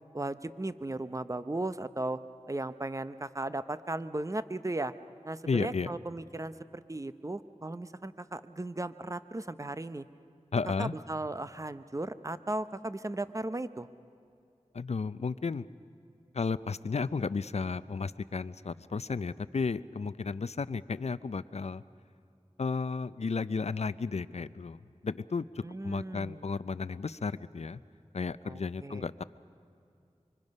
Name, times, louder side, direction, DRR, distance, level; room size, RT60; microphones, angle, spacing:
voice 1, 0.1-2.2 2.5-4.9 5.2-10.0 10.8-13.9 25.6-26.5 28.4-29.1, right 2 dB, 25° right, 13 dB, 0.7 m, -36 dB
voice 2, 5.5-5.9 10.5-10.9 14.7-15.7 16.3-21.8 22.6-27.8 28.1-29.2, left 4 dB, 65° left, 16 dB, 0.5 m, -33 dB
25.0 x 24.0 x 5.4 m, 2.5 s
wide cardioid pair, 40°, 12 cm